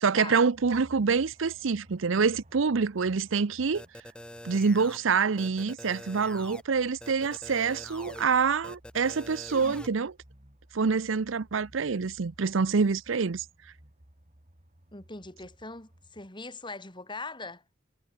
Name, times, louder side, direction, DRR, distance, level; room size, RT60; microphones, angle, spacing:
voice 1, 0.0-3.8 4.4-10.1 10.7-13.4, right 5 dB, 70° right, 0.6 m, -26 dB
sound 1, 0.5-16.3, right 1 dB, 35° right, 2.7 m, -57 dB
sound 2, 3.7-5.0 5.4-6.6 7.0-8.2 8.6-9.9, left 1 dB, 5° left, 0.8 m, -44 dB
voice 2, 14.9-17.6, left 3 dB, 25° left, 4.8 m, -41 dB
head